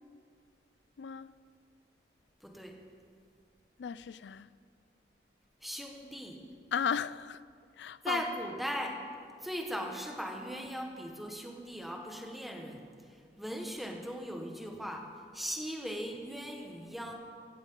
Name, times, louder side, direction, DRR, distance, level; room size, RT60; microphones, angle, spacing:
voice 1, 1.0-1.3 3.8-4.5 6.7-7.4 7.8-8.2, left 7 dB, 85° left, 0.4 m, -35 dB
voice 2, 2.4-2.8 5.6-6.4 8.0-9.1 9.4-17.1, equal, ahead, 1.3 m, -39 dB
17.0 x 15.5 x 3.8 m
head